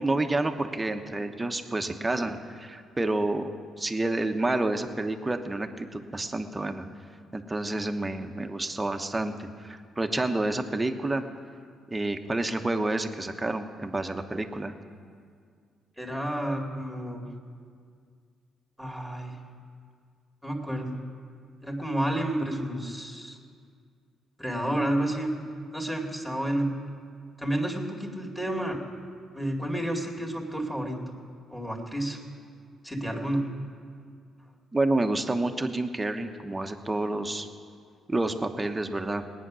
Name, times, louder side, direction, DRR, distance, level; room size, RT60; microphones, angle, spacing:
voice 1, 0.0-3.5 3.8-6.9 7.3-11.3 11.9-14.7 34.7-37.5 38.1-39.2, right 2 dB, 15° right, 6 dB, 1.0 m, -29 dB
voice 2, 16.0-17.3 18.8-19.4 20.4-21.0 21.6-23.4 24.4-25.4 25.7-26.7 27.4-28.8 29.3-31.2 31.5-32.2 32.8-33.5, right 1 dB, 5° left, 0 dB, 2.4 m, -30 dB
19.0 x 9.2 x 6.3 m, 2.1 s
cardioid pair, 90°, 0 cm